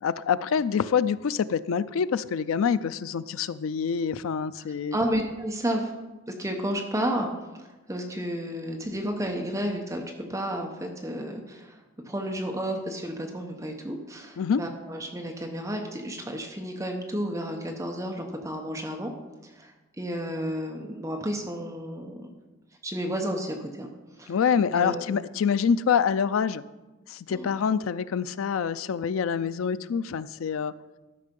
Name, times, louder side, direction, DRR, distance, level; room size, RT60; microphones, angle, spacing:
voice 1, 0.0-5.0 14.4-14.6 24.3-26.6 27.1-30.7, left 7 dB, 80° left, 15 dB, 0.4 m, -26 dB
voice 2, 4.9-5.9 6.3-7.3 7.5-10.0 10.3-11.8 12.0-19.1 19.4-19.7 20.0-22.3 22.8-23.9 24.2-24.3 24.8-25.0 27.3-27.5, equal, 15° right, 2 dB, 0.8 m, -31 dB
12.5 x 5.6 x 5.3 m, 1.1 s
head